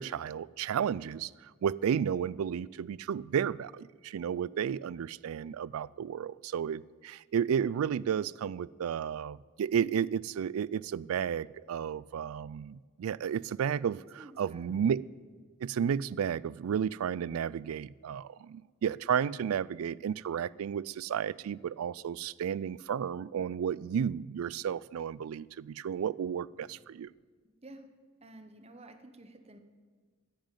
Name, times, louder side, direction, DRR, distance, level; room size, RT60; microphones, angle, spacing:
voice 1, 0.0-15.0 15.6-27.1, right 8 dB, 85° right, 22 dB, 0.3 m, -32 dB
voice 2, 14.2-14.7 26.6-26.7 27.4-27.9 28.2-29.6, right 2 dB, 30° right, 8 dB, 1.0 m, -52 dB
10.5 x 9.1 x 9.1 m, 1.5 s
head